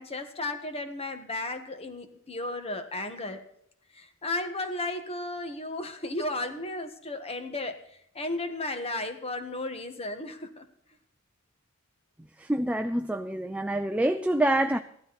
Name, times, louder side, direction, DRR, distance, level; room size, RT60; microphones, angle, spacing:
voice 1, 0.0-3.4 3.9-10.6, left 2 dB, 30° left, 1.6 m, -34 dB
voice 2, 12.4-14.8, right 1 dB, 5° right, 0.5 m, -26 dB
15.0 x 12.5 x 4.2 m
head